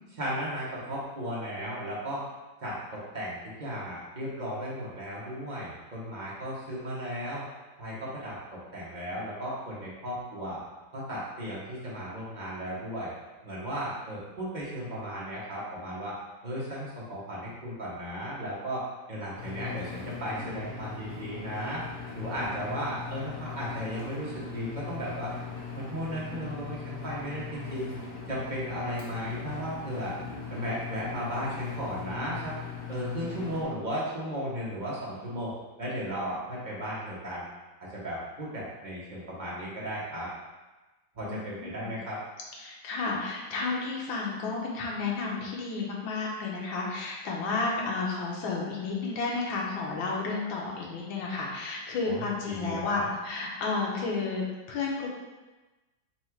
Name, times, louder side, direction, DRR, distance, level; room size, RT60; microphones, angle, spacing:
voice 1, 0.1-2.2 2.6-7.4 7.8-10.6 10.9-13.1 13.4-16.2 16.4-21.8 22.1-25.3 25.7-27.9 28.3-30.2 30.5-32.5 32.9-35.5 35.8-37.4 37.9-40.3 41.1-42.2 52.0-53.1, equal, 40° right, -7 dB, 0.6 m, -35 dB
Engine, 19.4-33.6, left 6 dB, 65° left, 1.4 m, -40 dB
voice 2, 41.2-41.9 42.6-55.1, left 3 dB, 90° left, -2 dB, 1.6 m, -32 dB
4.2 x 2.4 x 4.4 m, 1.2 s
omnidirectional pair, 2.0 m